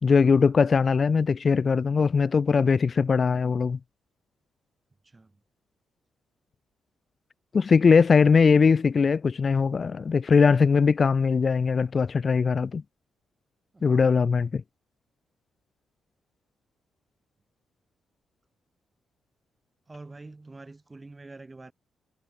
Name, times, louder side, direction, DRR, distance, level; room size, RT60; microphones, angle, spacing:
voice 1, 0.0-3.8 7.5-12.8 13.8-14.6, left 5 dB, 45° left, 0.9 m, -21 dB
voice 2, 5.0-5.4 13.7-14.1 19.9-21.7, right 3 dB, 25° right, 6.5 m, -46 dB
supercardioid pair, 55°, 0 cm